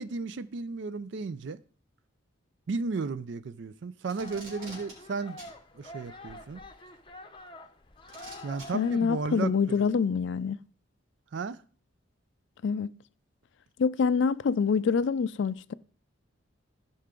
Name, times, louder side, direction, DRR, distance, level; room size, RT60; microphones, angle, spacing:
voice 1, 0.0-1.6 2.7-5.4 5.7-6.6 8.4-9.9 11.3-11.6, right 4 dB, 60° right, 0.4 m, -34 dB
Packing tape duct tape, 4.0-4.9 5.4-5.5 6.9-7.0 8.1-8.7 9.7-9.8, right 2 dB, 80° right, 3.4 m, -46 dB
sound 1, 4.2-9.2, left 1 dB, 25° left, 0.7 m, -47 dB
voice 2, 8.7-10.6 12.6-12.9 13.8-15.7, left 5 dB, 60° left, 0.3 m, -26 dB
15.0 x 5.6 x 3.7 m
head